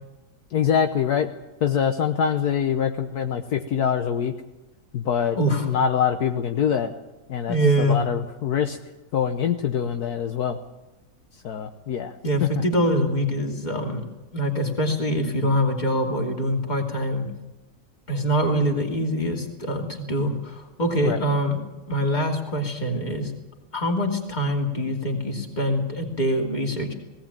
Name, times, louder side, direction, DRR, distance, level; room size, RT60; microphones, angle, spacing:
voice 1, 0.5-1.3 1.6-4.3 4.9-6.9 7.3-8.8 9.1-10.6 11.4-12.1 12.4-12.5 21.0-21.2, left 8 dB, 70° left, 6 dB, 1.4 m, -24 dB
voice 2, 5.3-5.7 7.5-8.0 12.2-14.0 14.3-17.3 18.1-21.6 21.9-23.3 23.7-26.9, equal, 25° left, 2 dB, 2.9 m, -24 dB
19.0 x 17.0 x 8.8 m, 1.1 s
omnidirectional pair, 1.7 m